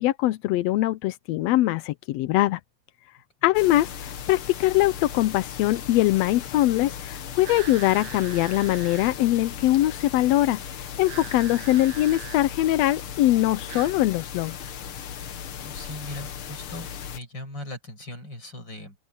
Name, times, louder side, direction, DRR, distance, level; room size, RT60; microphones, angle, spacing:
voice 1, 0.0-2.6 3.4-14.6, left 15 dB, 75° left, 1.6 m, -22 dB
sound 1, 3.5-17.2, left 8 dB, 55° left, 1.7 m, -37 dB
sound 2, 7.4-9.2 11.0-12.4 13.7-14.0, right 11 dB, 65° right, 2.0 m, -41 dB
voice 2, 15.5-19.0, left 1 dB, 35° left, 8.3 m, -39 dB
open air
omnidirectional pair, 3.4 m